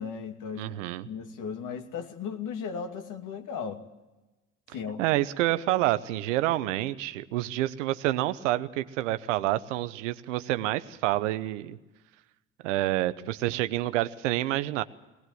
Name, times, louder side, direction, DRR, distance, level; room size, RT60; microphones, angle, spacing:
voice 1, 0.0-0.7 1.1-3.8 4.7-5.0, left 6 dB, 55° left, 5 dB, 2.5 m, -36 dB
voice 2, 0.6-1.1 5.0-11.8 12.6-14.8, right 15 dB, 75° right, 13 dB, 0.9 m, -28 dB
20.0 x 19.5 x 7.7 m, 1.1 s
hypercardioid pair, 60°, 37 cm